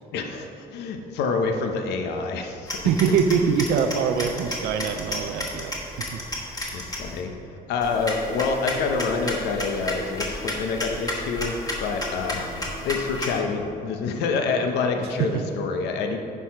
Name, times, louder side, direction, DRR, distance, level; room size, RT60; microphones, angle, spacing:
voice 1, 0.1-2.8 6.7-7.3 7.7-16.2, left 4 dB, 80° left, 4 dB, 0.8 m, -27 dB
sound 1, 2.7-7.2 7.8-13.4, left 1 dB, 20° left, 1.7 m, -32 dB
voice 2, 2.8-5.7 6.1-6.2 6.7-6.8 15.0-15.4, right 6 dB, 80° right, 5 dB, 0.5 m, -23 dB
9.9 x 4.7 x 5.7 m, 2.6 s
cardioid pair, 110°, 17 cm